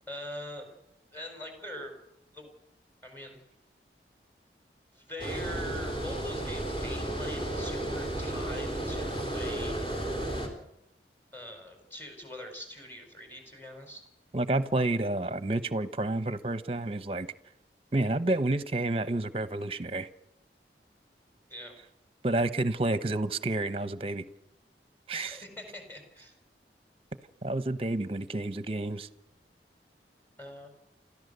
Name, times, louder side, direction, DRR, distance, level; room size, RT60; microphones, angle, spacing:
voice 1, 0.1-0.7 1.1-1.9 2.3-2.5 3.0-3.4 4.9-9.8 11.3-14.0 21.5-21.7 25.2-26.3 30.4-30.7, left 1 dB, 10° left, 3 dB, 4.5 m, -43 dB
Water, 5.2-10.5, right 1 dB, 30° left, 3.6 m, -33 dB
voice 2, 14.3-17.3 17.9-20.1 22.2-24.2 25.1-25.4 27.4-29.1, right 2 dB, 35° right, 14 dB, 0.9 m, -29 dB
29.5 x 13.5 x 6.8 m, 0.86 s
head